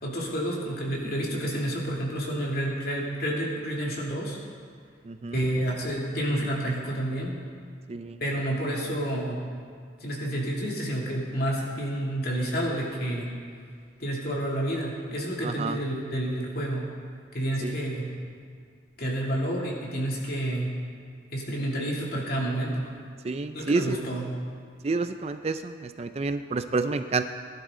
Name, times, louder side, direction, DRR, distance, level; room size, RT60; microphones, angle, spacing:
voice 1, 0.0-4.4 5.3-7.4 8.2-9.4 10.0-13.3 14.0-16.9 17.3-18.1 19.0-20.7 21.3-22.9 23.5-24.3, right 1 dB, 55° left, -3 dB, 2.7 m, -29 dB
voice 2, 5.1-5.4 7.9-8.2 15.4-15.8 17.6-17.7 23.2-24.0 24.8-27.2, right 3 dB, 35° right, 9 dB, 0.4 m, -29 dB
20.0 x 11.0 x 3.8 m, 2.1 s
head